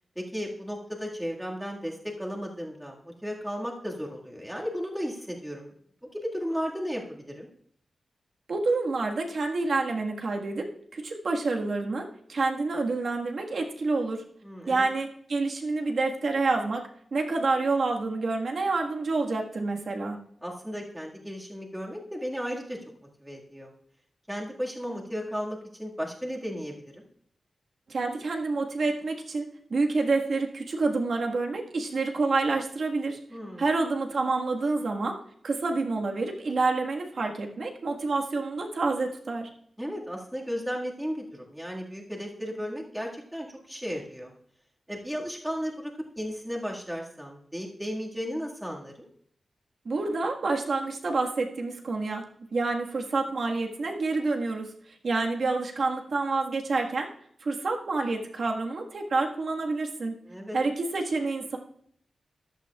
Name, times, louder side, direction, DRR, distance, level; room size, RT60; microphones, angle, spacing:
voice 1, 0.2-5.7 6.1-7.5 14.4-14.9 20.4-22.8 23.2-23.7 24.3-27.0 33.3-33.7 39.8-44.3 44.9-49.1 60.2-60.6, equal, 5° right, -2 dB, 1.9 m, -35 dB
voice 2, 8.5-14.2 14.7-20.2 27.9-33.2 33.6-35.2 35.4-39.5 49.8-54.7 55.0-57.1 57.4-60.1 60.5-61.6, right 3 dB, 60° right, 2 dB, 1.5 m, -28 dB
14.0 x 12.0 x 2.4 m, 0.65 s
wide cardioid pair, 135°, 0 cm